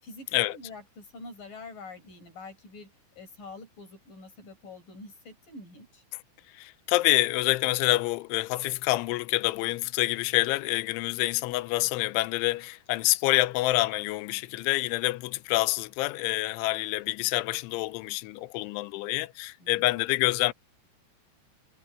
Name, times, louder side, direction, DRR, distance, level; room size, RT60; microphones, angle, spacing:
voice 1, 0.0-6.0 19.6-19.9, left 3 dB, 45° left, 8.9 m, -46 dB
voice 2, 6.6-20.5, left 19 dB, 85° left, 3.1 m, -27 dB
omnidirectional pair, 5.7 m